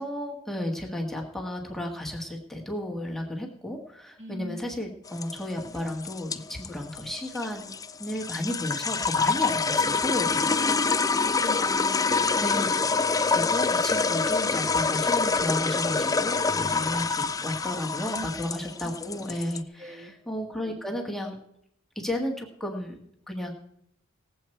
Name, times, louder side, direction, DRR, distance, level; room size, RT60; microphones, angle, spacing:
voice 1, 0.0-7.7 8.0-10.7 12.4-12.7 13.3-21.3 21.9-23.0 23.3-23.5, left 1 dB, ahead, 0 dB, 1.6 m, -33 dB
voice 2, 4.2-4.6 10.6-12.6 18.1-18.3 19.8-20.1, equal, 30° right, 2 dB, 1.5 m, -41 dB
sound 1, 5.1-19.6, left 4 dB, 15° left, 0.4 m, -26 dB
18.5 x 7.8 x 4.5 m, 0.74 s
head